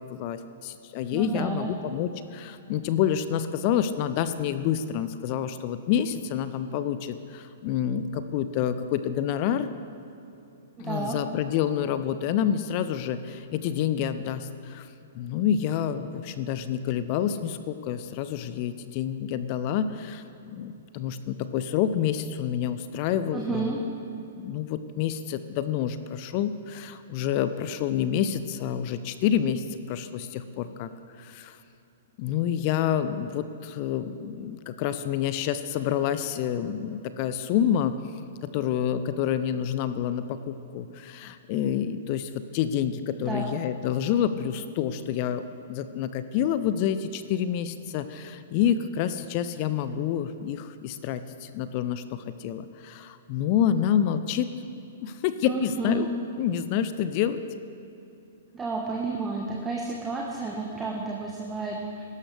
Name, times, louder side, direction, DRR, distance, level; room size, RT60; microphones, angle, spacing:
voice 1, 0.1-9.7 10.8-14.9 15.1-23.8 24.2-30.9 31.2-31.6 32.2-38.0 38.4-45.4 45.7-54.5 55.0-56.1 56.4-57.4, left 9 dB, 40° left, 12 dB, 0.6 m, -28 dB
voice 2, 1.1-1.7 10.8-11.2 23.3-23.8 43.2-43.5 55.4-56.1 58.5-62.0, right 3 dB, 15° right, -1 dB, 1.3 m, -31 dB
17.0 x 12.0 x 3.4 m, 2.8 s
figure-of-eight pair, 110°, 0 cm